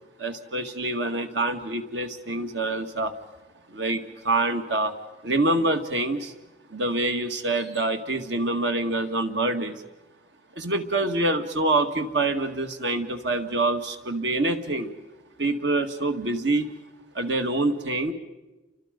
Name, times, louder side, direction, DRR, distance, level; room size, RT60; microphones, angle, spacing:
voice 1, 0.2-3.1 3.7-4.9 5.2-6.3 6.7-9.8 10.6-14.9 15.4-16.7 17.2-18.1, right 2 dB, 70° right, 6 dB, 2.0 m, -26 dB
30.0 x 25.5 x 5.3 m, 1.1 s
head